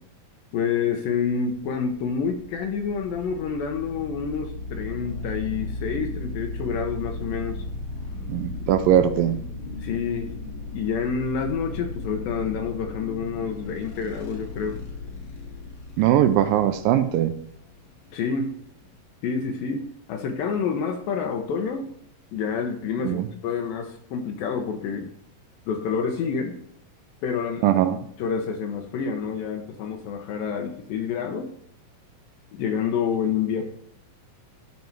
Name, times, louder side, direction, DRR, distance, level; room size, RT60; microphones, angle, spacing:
voice 1, 0.5-7.6 9.8-10.3 10.7-14.8 18.1-18.5 19.2-21.9 22.3-25.1 25.7-26.6 27.2-27.7 28.2-31.5 32.5-33.6, left 6 dB, 80° left, 3 dB, 2.6 m, -28 dB
sound 1, 2.3-19.0, left 2 dB, 50° left, 1.5 m, -36 dB
voice 2, 8.3-9.4 16.0-17.3 23.0-23.3 27.6-28.0, right 11 dB, 80° right, 9 dB, 2.3 m, -20 dB
11.5 x 5.3 x 4.6 m, 0.66 s
omnidirectional pair, 4.1 m